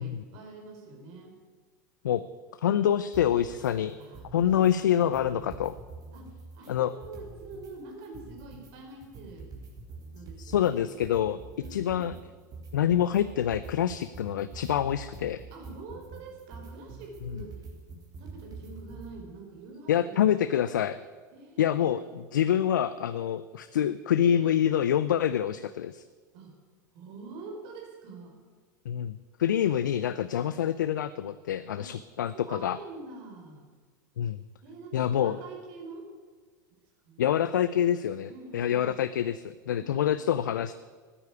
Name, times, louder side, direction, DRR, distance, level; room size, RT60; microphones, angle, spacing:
voice 1, 0.0-1.3 4.0-5.5 6.1-9.5 10.1-10.9 11.6-12.2 15.5-17.5 18.2-20.5 21.3-22.2 26.3-26.5 26.9-28.4 29.6-30.2 31.8-31.9 32.3-33.7 34.6-36.1 37.0-37.2 38.3-39.0 39.7-40.3, right 3 dB, 55° right, 2 dB, 4.7 m, -46 dB
voice 2, 2.6-4.0 4.3-5.7 6.7-6.9 10.4-11.4 11.7-12.1 12.7-15.4 17.3-17.4 19.9-21.0 21.6-26.0 28.9-32.8 34.2-34.4 34.9-35.4 37.2-40.7, left 10 dB, 80° left, 14 dB, 0.5 m, -26 dB
sound 1, 3.1-3.7 4.0-4.7 5.0-7.7 8.0-19.1, right 4 dB, 40° right, 4.0 m, -46 dB
15.0 x 9.9 x 8.5 m, 1.5 s
hypercardioid pair, 90°, 10 cm